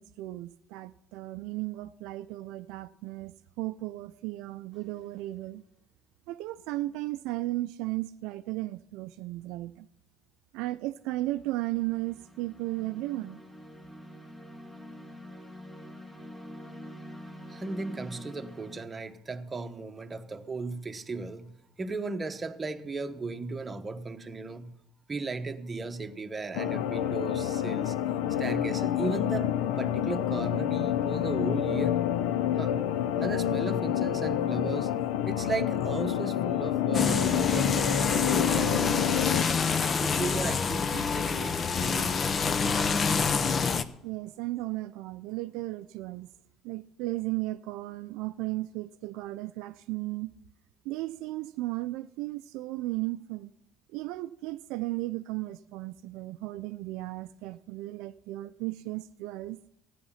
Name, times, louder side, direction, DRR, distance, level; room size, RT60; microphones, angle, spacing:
voice 1, 0.0-5.6 6.3-9.9 10.5-13.4 44.0-46.3 46.6-50.3 50.8-53.5 53.9-59.6, right 18 dB, 75° right, 0.4 m, -35 dB
sound 1, 4.7-5.1 11.0-18.8, equal, 20° left, 2.3 m, -46 dB
voice 2, 17.5-24.7 25.1-28.0 28.3-32.0 32.6-32.8 33.2-34.9 35.3-38.9 39.8-42.2, right 3 dB, 25° right, 1.1 m, -36 dB
sound 2, 26.5-39.4, left 10 dB, 80° left, 0.6 m, -28 dB
sound 3, 36.9-43.8, left 5 dB, 40° left, 0.8 m, -27 dB
14.0 x 10.0 x 5.7 m
supercardioid pair, 80°, 0 cm